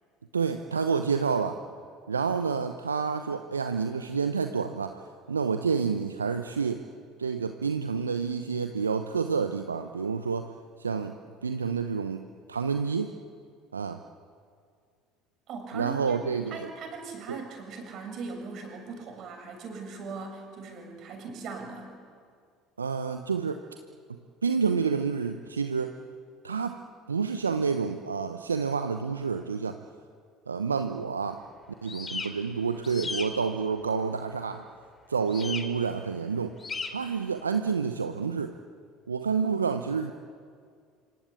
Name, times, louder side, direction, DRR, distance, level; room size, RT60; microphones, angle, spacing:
voice 1, 0.3-1.6 2.1-6.8 7.2-10.5 10.8-13.1 13.7-14.0 15.7-16.7 17.3-17.4 22.8-23.6 24.4-26.0 26.4-26.8 27.1-29.8 30.5-31.4 31.8-34.6 35.1-36.6 36.9-38.5 39.1-40.1, right 5 dB, 85° right, 8 dB, 0.8 m, -29 dB
voice 2, 15.5-16.2 16.5-21.9, right 4 dB, 50° right, 3 dB, 6.8 m, -39 dB
sound 1, 31.9-32.3 32.8-33.2 35.3-35.6 36.6-36.9, left 4 dB, 25° left, 3.1 m, -34 dB
26.5 x 24.5 x 8.5 m, 2.2 s
figure-of-eight pair, 65°, 0 cm